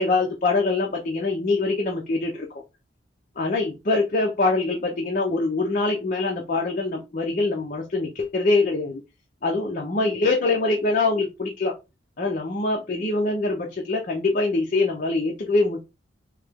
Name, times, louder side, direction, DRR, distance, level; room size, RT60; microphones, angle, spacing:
voice 1, 0.0-2.3 3.4-9.0 9.4-11.7 12.2-15.8, left 3 dB, 45° left, 0 dB, 0.6 m, -24 dB
3.2 x 2.8 x 3.5 m, 0.26 s
head